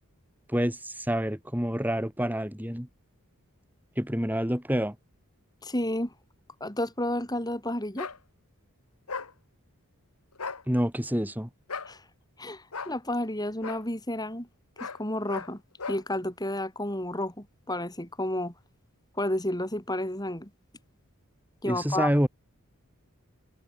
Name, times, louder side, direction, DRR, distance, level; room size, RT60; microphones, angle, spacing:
voice 1, 0.5-2.9 4.0-5.0 10.7-11.5 21.7-22.3, equal, 10° right, 3.5 m, -27 dB
voice 2, 5.6-6.1 6.6-8.1 11.9-12.0 12.4-14.5 14.8-15.6 15.9-18.5 19.2-20.5 21.6-22.3, left 1 dB, 15° left, 6.4 m, -31 dB
sound 1, 8.0-8.2 9.1-9.3 10.3-10.6 11.7-11.9 12.7-12.9 13.6-13.8 14.8-15.0 15.3-15.5 15.8-16.0, left 5 dB, 80° left, 2.2 m, -36 dB
head